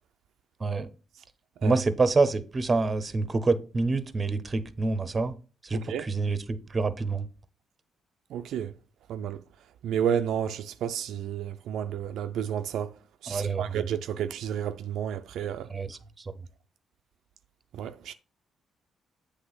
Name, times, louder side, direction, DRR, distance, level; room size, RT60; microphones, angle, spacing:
voice 1, 1.6-5.4 5.6-7.3 13.3-13.9 15.7-16.5, right 3 dB, 30° right, 0.7 m, -27 dB
voice 2, 5.7-6.1 8.3-8.7 9.1-9.4 9.8-12.9 13.2-15.7 17.7-18.1, right 9 dB, 75° right, 0.4 m, -31 dB
8.0 x 3.3 x 5.5 m
cardioid pair, 90°, 0 cm